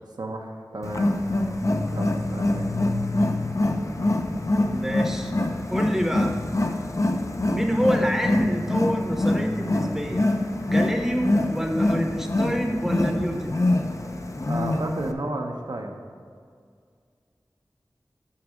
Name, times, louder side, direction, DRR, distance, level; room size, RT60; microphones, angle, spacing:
voice 1, 0.2-1.1 1.9-2.7 14.5-15.9, right 2 dB, 70° right, 2 dB, 0.7 m, -32 dB
Wild animals, 0.8-15.1, left 1 dB, 45° left, 0.5 m, -25 dB
voice 2, 4.5-5.3 5.7-6.4 7.5-10.2 10.7-13.6, equal, 5° right, 3 dB, 0.8 m, -26 dB
6.6 x 3.9 x 6.2 m, 2.1 s
wide cardioid pair, 45°, 7 cm